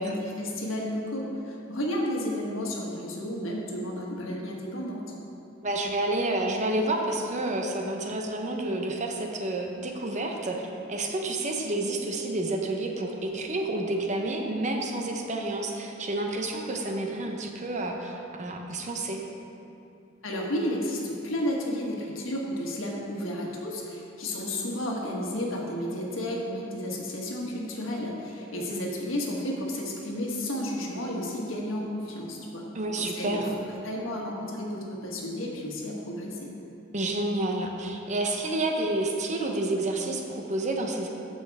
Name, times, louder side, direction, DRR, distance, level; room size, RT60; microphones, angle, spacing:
voice 1, 0.0-5.1 20.2-33.4 33.8-36.5, left 1 dB, 80° left, -2 dB, 1.4 m, -32 dB
voice 2, 5.6-19.2 28.5-28.9 32.7-33.6 36.9-41.1, right 2 dB, 35° right, 2 dB, 0.8 m, -29 dB
14.0 x 5.5 x 3.5 m, 2.8 s
head